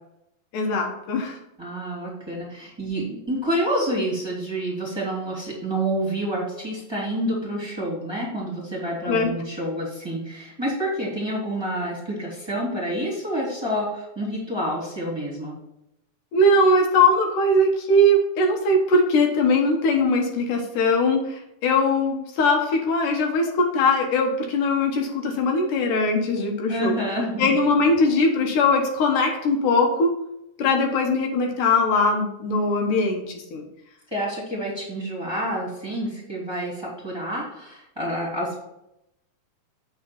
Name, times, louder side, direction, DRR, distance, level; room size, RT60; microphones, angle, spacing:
voice 1, 0.5-1.4 9.1-9.3 16.3-27.0 27.4-30.2 30.6-33.6, left 2 dB, 85° left, 3 dB, 2.8 m, -21 dB
voice 2, 1.6-15.5 26.7-27.5 34.1-38.6, right 1 dB, 10° right, -6 dB, 2.1 m, -28 dB
7.6 x 4.3 x 5.8 m, 0.83 s
omnidirectional pair, 3.6 m